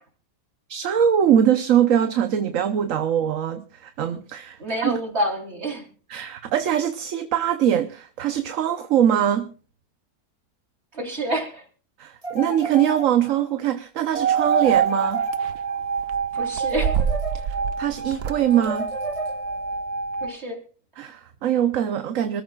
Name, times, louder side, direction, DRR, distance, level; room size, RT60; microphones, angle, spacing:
voice 1, 0.7-5.0 6.1-9.5 12.0-15.2 17.3-18.9 21.0-22.4, right 9 dB, 60° right, 9 dB, 1.2 m, -22 dB
voice 2, 4.6-5.9 10.9-11.7 16.3-17.0 20.2-20.6, right 1 dB, 40° right, 2 dB, 4.0 m, -28 dB
sound 1, 12.2-13.5 14.4-15.9 16.6-17.8 18.5-19.7, right 1 dB, 20° right, 3.3 m, -34 dB
sound 2, 14.1-20.3, right 6 dB, 75° right, 1.4 m, -25 dB
26.0 x 14.0 x 2.4 m, 0.36 s
omnidirectional pair, 1.7 m